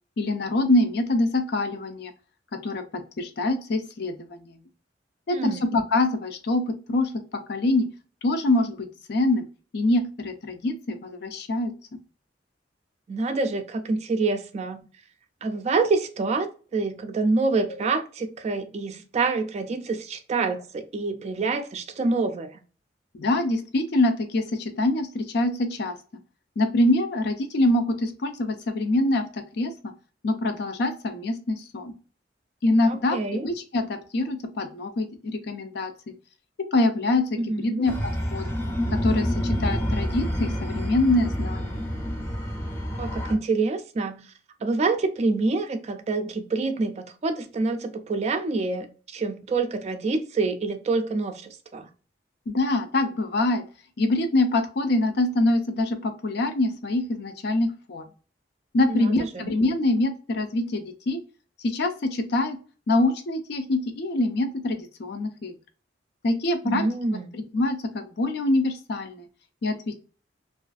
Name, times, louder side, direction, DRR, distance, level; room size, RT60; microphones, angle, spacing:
voice 1, 0.2-2.1 2.6-4.5 5.3-7.1 7.5-7.9 8.2-9.4 9.7-11.7 23.1-25.9 26.6-29.7 30.2-31.9 32.6-35.9 36.7-37.9 38.3-38.5 38.9-41.7 52.5-53.6 54.0-58.0 58.7-61.2 61.6-62.6 62.9-65.5 66.2-66.8 67.3-69.2 69.6-70.0, left 2 dB, 65° left, 0.5 m, -25 dB
voice 2, 5.3-5.6 13.1-14.9 15.4-22.6 32.9-33.5 37.4-37.8 43.0-44.3 44.6-51.9 58.9-59.5 66.6-67.3, right 3 dB, 35° right, 0.3 m, -27 dB
sound 1, 37.9-43.3, equal, 15° left, 0.5 m, -28 dB
2.4 x 2.4 x 2.3 m
head